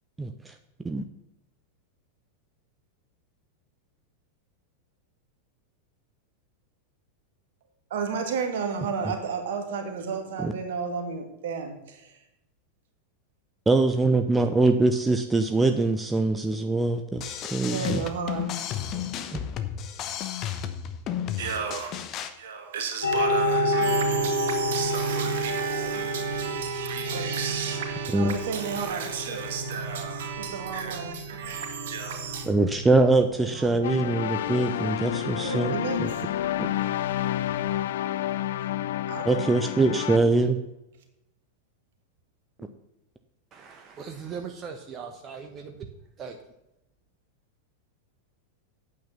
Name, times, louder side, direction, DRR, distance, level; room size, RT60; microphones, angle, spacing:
voice 1, 0.2-0.5 0.8-1.0 10.4-10.5 13.7-18.0 19.3-19.4 28.1-28.3 32.5-36.1 36.6-36.7 39.3-40.6, right 2 dB, 10° right, 0.7 m, -23 dB
voice 2, 7.9-12.2 17.6-18.6 21.4-22.1 22.3-32.5 33.2-34.2 35.2-36.0 39.1-39.6, right 6 dB, 55° right, 2.0 m, -33 dB
sound 1, 17.2-22.3, left 9 dB, 35° left, 1.0 m, -33 dB
sound 2, 23.0-37.8, equal, 85° left, 3.2 m, -31 dB
sound 3, 33.8-40.2, left 12 dB, 60° left, 0.5 m, -29 dB
voice 3, 43.5-45.9 46.2-46.4, right 6 dB, 30° right, 1.1 m, -39 dB
9.1 x 8.7 x 5.7 m
figure-of-eight pair, 90°, 0 cm